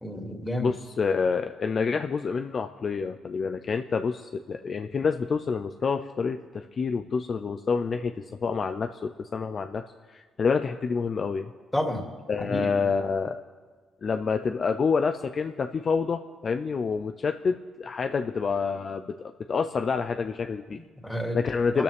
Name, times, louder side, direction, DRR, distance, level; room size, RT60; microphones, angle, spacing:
voice 1, 0.0-0.7 11.7-12.0 12.5-12.9 20.7-21.4 21.7-21.8, left 1 dB, 10° left, 2 dB, 2.6 m, -31 dB
voice 2, 0.6-8.1 8.4-9.8 10.1-11.5 12.3-13.4 14.0-19.1 19.5-20.8 21.3-21.8, left 5 dB, 45° left, 7 dB, 0.7 m, -27 dB
25.5 x 13.0 x 3.6 m, 1.5 s
cardioid pair, 90°, 0 cm